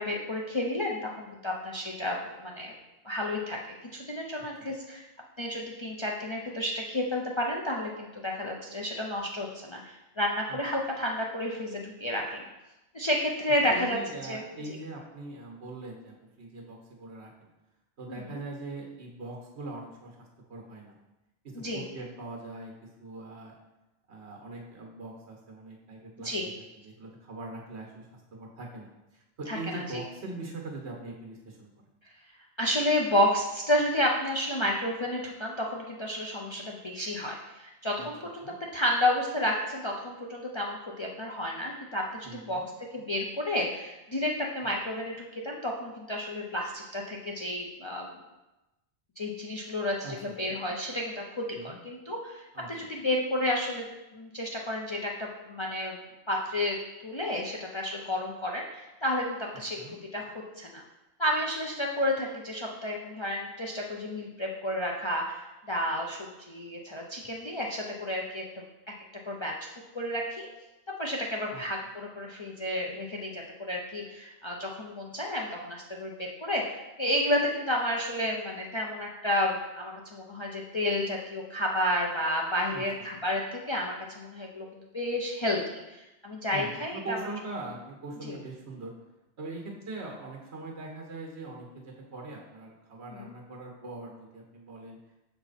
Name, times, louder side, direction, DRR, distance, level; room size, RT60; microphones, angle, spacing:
voice 1, 0.0-2.8 3.0-3.6 3.9-5.1 5.4-12.4 12.9-14.0 14.2-14.4 18.1-18.4 21.6-21.8 26.2-26.5 29.5-29.8 32.6-38.4 38.7-42.6 42.9-48.1 49.2-53.9 54.1-56.0 56.3-56.8 57.0-59.8 60.1-60.8 61.2-68.6 69.3-69.5 69.9-70.5 71.0-84.7 84.9-85.6 85.9-87.2 88.2-88.4 93.1-93.3, left 1 dB, 35° left, -1 dB, 0.5 m, -31 dB
voice 2, 13.7-17.3 18.0-21.0 21.4-23.5 24.1-31.7 37.9-38.1 38.4-38.5 42.2-42.7 50.0-50.3 51.5-51.8 52.5-52.9 59.7-59.9 71.5-71.6 82.7-82.8 86.5-88.9 89.4-95.0, right 2 dB, 70° right, 0 dB, 1.5 m, -42 dB
6.7 x 4.6 x 4.1 m, 1.0 s
omnidirectional pair, 1.1 m